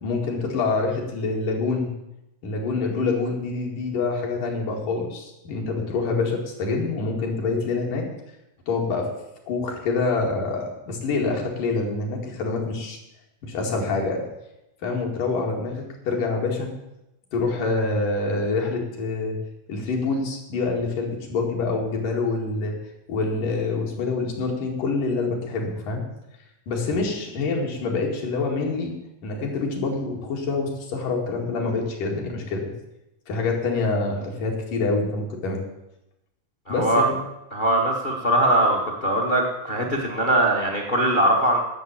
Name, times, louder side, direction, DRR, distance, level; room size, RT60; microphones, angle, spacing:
voice 1, 0.0-1.9 2.4-8.1 8.7-9.1 9.5-13.0 13.4-14.2 14.8-16.7 17.3-19.4 19.7-22.8 23.1-26.0 26.7-28.9 29.2-32.7 33.3-35.6 36.7-37.1, left 3 dB, 85° left, 0 dB, 3.9 m, -26 dB
voice 2, 36.7-37.1 37.5-41.6, right 1 dB, 60° left, 2 dB, 0.5 m, -21 dB
11.5 x 6.9 x 9.0 m, 0.91 s
omnidirectional pair, 3.6 m